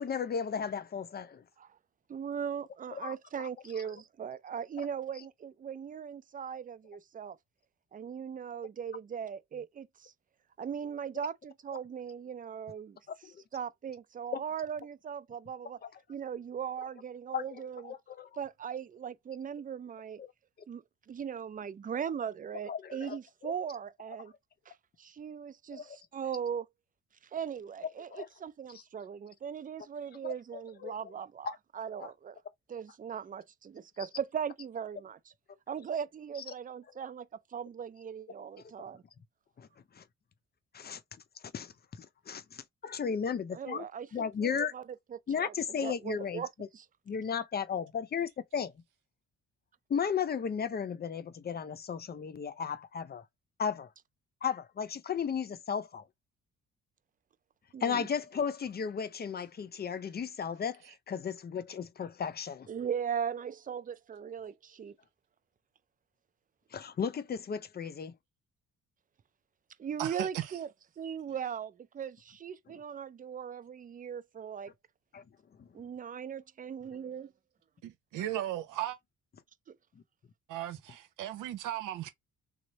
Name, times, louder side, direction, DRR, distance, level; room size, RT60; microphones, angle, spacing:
voice 1, 0.0-1.4 3.0-3.1 14.3-14.4 17.3-18.4 20.2-20.3 22.7-23.2 23.4-23.5 25.7-26.0 28.1-28.3 30.2-30.3 30.8-30.9 31.4-31.6 32.0-32.1 39.6-39.7 40.0-40.1 40.7-41.0 41.5-43.8 44.1-44.7 45.3-46.4 47.1-48.7 49.9-53.2 53.6-53.9 54.4-56.0 57.8-60.8 61.1-62.7 66.7-68.1 75.1-75.2 75.6-75.7, left 7 dB, 30° left, 0.5 m, -35 dB
voice 2, 2.1-7.4 7.9-10.1 10.6-13.0 13.5-15.8 16.1-17.9 18.4-20.2 20.7-24.3 24.7-26.7 27.3-32.4 32.7-35.2 35.7-39.0 43.5-44.8 45.1-46.5 46.7-46.9 57.7-58.1 62.7-65.0 69.8-70.7 71.0-74.7 75.7-77.3 79.7-79.8, right 8 dB, 30° right, 0.4 m, -39 dB
voice 3, 70.0-70.5 77.8-79.0 80.5-82.1, right 13 dB, 85° right, 0.8 m, -36 dB
3.1 x 2.0 x 3.9 m
cardioid pair, 90°, 30 cm